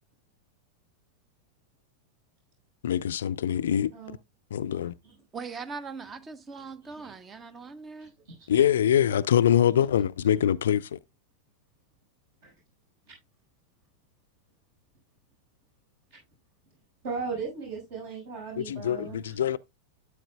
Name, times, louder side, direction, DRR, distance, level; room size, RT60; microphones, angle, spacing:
voice 1, 2.8-3.9 4.5-4.9 8.5-11.0 18.6-19.6, left 10 dB, 60° left, 0.4 m, -24 dB
voice 2, 5.3-8.1, right 5 dB, 20° right, 1.0 m, -40 dB
voice 3, 17.0-19.3, right 5 dB, 50° right, 6.1 m, -36 dB
13.0 x 8.1 x 2.3 m
figure-of-eight pair, 90°, 0 cm